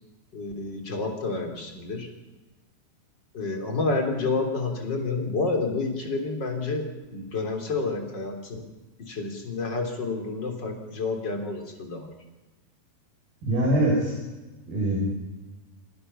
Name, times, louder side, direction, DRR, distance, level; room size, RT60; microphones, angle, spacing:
voice 1, 0.3-2.1 3.3-8.7 9.0-12.1, left 3 dB, 25° left, 3 dB, 3.6 m, -29 dB
voice 2, 13.4-14.2 14.7-15.0, right 1 dB, 60° right, -3 dB, 8.4 m, -23 dB
29.5 x 25.0 x 5.7 m, 1.2 s
omnidirectional pair, 4.8 m